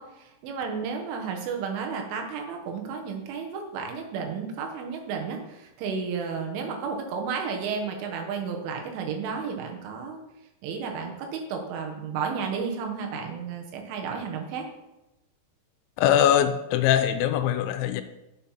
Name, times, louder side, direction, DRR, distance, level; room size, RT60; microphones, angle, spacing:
voice 1, 0.0-10.2 10.6-14.7, right 5 dB, 80° right, 3.9 m, -32 dB
voice 2, 16.0-18.0, left 10 dB, 85° left, 2.9 m, -22 dB
9.3 x 7.4 x 5.7 m
omnidirectional pair, 5.5 m